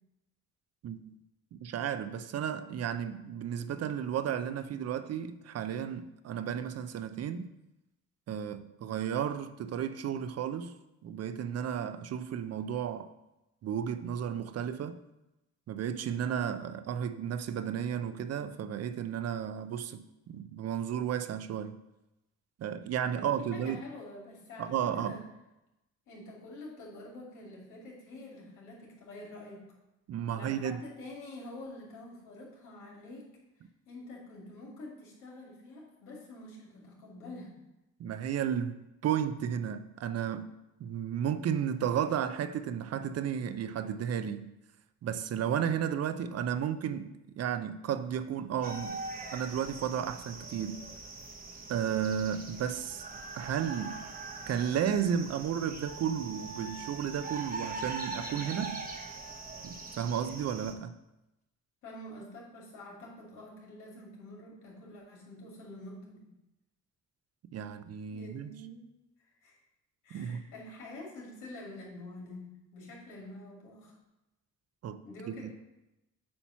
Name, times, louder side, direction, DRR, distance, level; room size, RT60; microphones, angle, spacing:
voice 1, 0.8-1.2 1.5-7.5 8.3-10.7 11.0-13.1 13.6-15.0 15.7-21.8 22.6-23.8 24.6-25.2 30.1-30.8 38.0-40.5 40.8-44.5 45.0-49.0 49.3-50.8 51.7-53.0 53.3-54.0 54.5-58.9 59.6-60.9 67.5-68.5 70.1-70.4 74.8-75.0 75.3-75.5, right 8 dB, 55° right, 0.5 m, -33 dB
voice 2, 23.1-25.2 26.1-29.7 30.4-33.2 33.9-37.6 61.8-66.3 68.1-68.8 69.4-69.6 70.0-72.5 72.7-74.0 75.0-75.5, left 1 dB, 85° left, 2.4 m, -47 dB
sound 1, 48.6-60.7, right 3 dB, 30° right, 0.9 m, -42 dB
Wind instrument woodwind instrument, 55.8-60.2, right 7 dB, 25° left, 1.1 m, -47 dB
8.6 x 2.9 x 5.6 m
cardioid pair, 90°, 30 cm